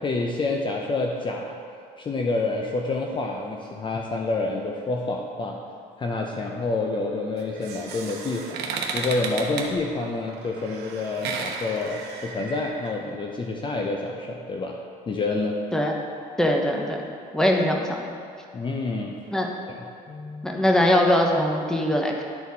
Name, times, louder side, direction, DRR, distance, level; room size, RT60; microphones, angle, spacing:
voice 1, 0.0-1.6 2.0-5.6 6.0-8.6 8.9-14.8 15.1-15.6 18.5-19.2 19.7-19.8 20.1-20.5, left 3 dB, 30° left, 1 dB, 0.6 m, -28 dB
sound 1, 7.4-13.0, right 5 dB, 75° right, 0.9 m, -34 dB
voice 2, 16.4-17.1 17.3-18.0 19.3-19.5 20.4-22.2, left 1 dB, 5° left, 1 dB, 0.9 m, -21 dB
11.5 x 4.1 x 4.1 m, 2.3 s
cardioid pair, 110°, 17 cm